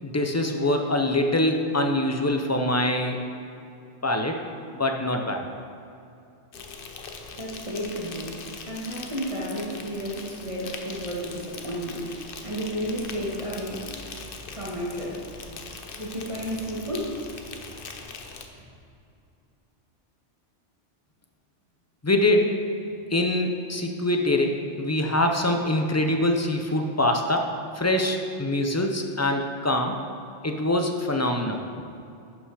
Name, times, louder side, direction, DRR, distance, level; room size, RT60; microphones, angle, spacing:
voice 1, 0.0-3.2 4.0-4.4 4.7-5.4 22.0-22.5 23.1-30.0 30.4-31.6, left 1 dB, 20° left, 4 dB, 0.4 m, -24 dB
Insect, 6.5-18.5, left 4 dB, 55° left, 0.9 m, -41 dB
voice 2, 7.4-8.4 8.7-13.8 14.5-15.2 16.0-17.2 17.7-17.8, equal, 25° right, -5 dB, 1.7 m, -32 dB
11.5 x 5.7 x 4.8 m, 2.6 s
omnidirectional pair, 1.2 m